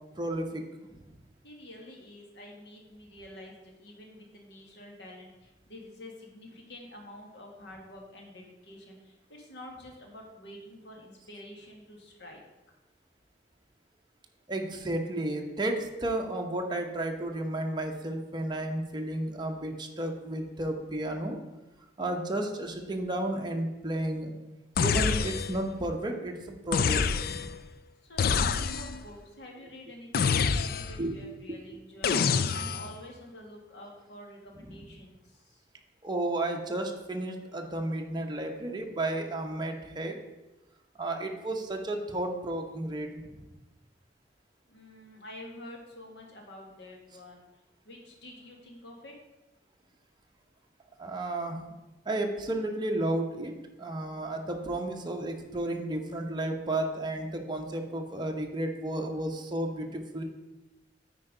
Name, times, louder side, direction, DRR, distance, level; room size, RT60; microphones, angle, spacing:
voice 1, 0.1-0.6 0.9-1.0 14.5-21.4 22.0-24.3 24.8-27.4 31.0-31.2 32.2-32.3 36.0-40.2 41.0-43.3 51.0-51.6 52.0-53.5 53.8-60.2, right 1 dB, 25° right, 2 dB, 0.9 m, -32 dB
voice 2, 1.4-12.4 28.0-35.6 44.7-47.5 47.8-49.2, left 1 dB, 70° left, 0 dB, 1.7 m, -48 dB
sound 1, 24.8-25.7 26.7-27.6 28.2-29.0 30.1-31.1 32.0-32.9, left 6 dB, 55° left, 0.4 m, -27 dB
9.2 x 4.6 x 5.0 m, 1.0 s
head